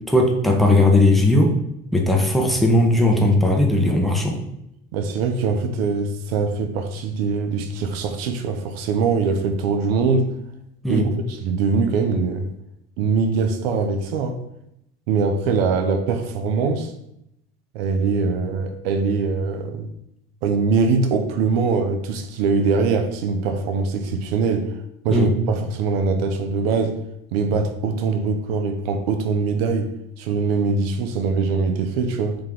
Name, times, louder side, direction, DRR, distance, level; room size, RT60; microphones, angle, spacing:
voice 1, 0.1-1.5 1.9-4.4 10.8-11.0 25.1-25.3, left 1 dB, ahead, 1 dB, 0.8 m, -17 dB
voice 2, 4.9-10.3 10.9-12.5 13.0-14.4 15.1-16.9 17.7-19.9 20.4-24.7 25.0-27.0 27.3-29.9 30.2-32.4, right 4 dB, 85° right, 7 dB, 0.6 m, -22 dB
3.7 x 2.8 x 3.6 m, 0.78 s
supercardioid pair, 80°, 30 cm